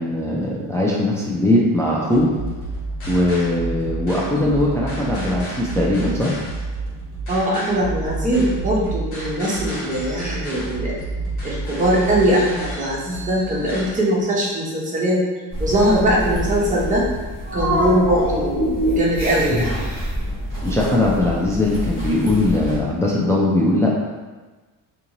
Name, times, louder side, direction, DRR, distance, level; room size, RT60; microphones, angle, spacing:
voice 1, 0.0-2.3 3.1-6.4 20.6-23.9, left 1 dB, 5° left, -4 dB, 0.4 m, -20 dB
sound 1, 2.1-13.9, right 2 dB, 80° left, 1.2 m, -30 dB
voice 2, 7.3-10.9 11.4-15.2 15.6-17.0 17.5-19.8, right 1 dB, 15° right, -5 dB, 0.8 m, -21 dB
sound 2, 15.5-22.8, equal, 40° left, 1.1 m, -25 dB
2.5 x 2.5 x 2.9 m, 1.3 s
supercardioid pair, 75°, 47 cm